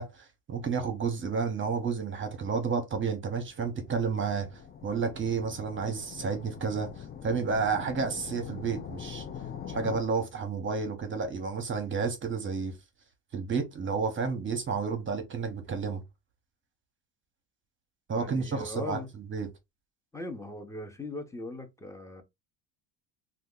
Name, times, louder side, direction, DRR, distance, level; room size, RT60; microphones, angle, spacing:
voice 1, 0.0-4.5 4.8-9.2 9.7-12.7 13.3-16.0 18.1-19.0 19.3-19.5, right 5 dB, 30° right, 0.9 m, -31 dB
sound 1, 3.7-10.0, left 8 dB, 25° left, 0.3 m, -43 dB
voice 2, 18.1-19.1 20.1-22.2, left 2 dB, 5° left, 0.7 m, -39 dB
2.8 x 2.4 x 3.7 m
cardioid pair, 115°, 42 cm